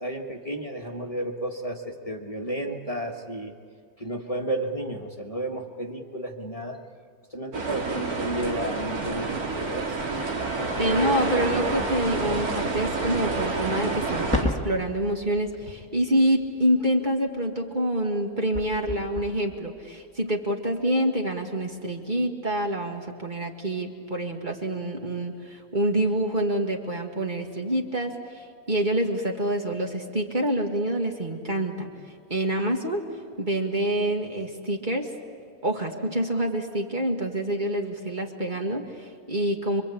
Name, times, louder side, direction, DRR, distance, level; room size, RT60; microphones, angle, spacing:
voice 1, 0.0-3.5 4.0-6.8 7.3-10.0 10.8-11.6, right 1 dB, 25° left, 1 dB, 1.7 m, -32 dB
sound 1, 7.5-14.4, right 3 dB, 90° right, 2.9 m, -28 dB
voice 2, 10.8-28.1 28.7-31.9 32.3-33.0 33.4-35.1 35.6-39.8, right 1 dB, 35° right, 1 dB, 2.0 m, -27 dB
sound 2, 14.3-21.0 21.4-21.5 21.8-21.9, left 1 dB, 5° left, 1.6 m, -35 dB
26.0 x 24.5 x 8.6 m, 2.2 s
omnidirectional pair, 1.5 m